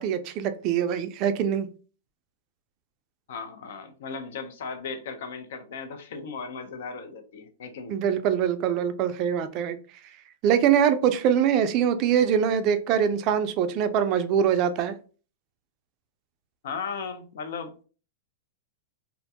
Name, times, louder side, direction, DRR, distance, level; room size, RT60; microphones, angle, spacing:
voice 1, 0.0-1.7 7.9-9.8 10.4-14.9, right 8 dB, 40° right, 0.3 m, -23 dB
voice 2, 3.3-7.9 16.6-17.8, left 5 dB, 70° left, 0.5 m, -36 dB
2.4 x 2.1 x 2.7 m
hypercardioid pair, 135°, 0 cm